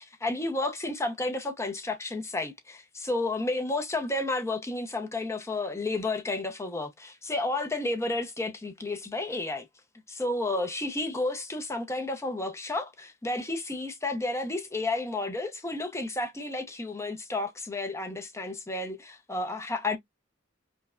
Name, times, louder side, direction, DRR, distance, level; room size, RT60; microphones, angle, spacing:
voice 1, 0.0-9.7 10.1-20.0, left 2 dB, 15° left, 0.7 m, -31 dB
5.2 x 2.2 x 2.4 m
head